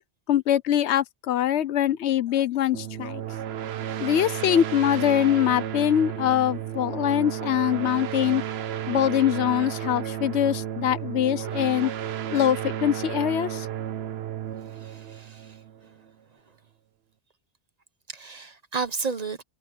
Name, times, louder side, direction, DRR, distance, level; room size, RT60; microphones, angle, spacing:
voice 1, 0.3-3.2 4.0-8.4 8.9-11.9 12.3-13.7, left 11 dB, 80° left, 1.0 m, -23 dB
sound 1, 2.7-16.1, right 10 dB, 70° right, 0.9 m, -33 dB
voice 2, 14.6-16.0 18.1-19.4, right 4 dB, 40° right, 1.1 m, -33 dB
omnidirectional pair, 1.1 m